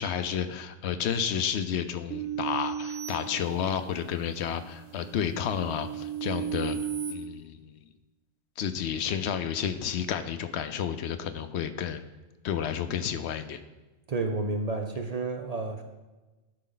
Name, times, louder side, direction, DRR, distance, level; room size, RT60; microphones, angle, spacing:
voice 1, 0.0-6.8 7.1-7.8 8.6-12.0 12.4-13.6, left 8 dB, 75° left, 10 dB, 0.9 m, -31 dB
sound 1, 2.1-4.1 4.6-7.1, right 8 dB, 65° right, 1.5 m, -35 dB
voice 2, 14.1-15.8, right 3 dB, 45° right, 4 dB, 0.6 m, -30 dB
12.0 x 4.2 x 3.9 m, 1.1 s
omnidirectional pair, 1.1 m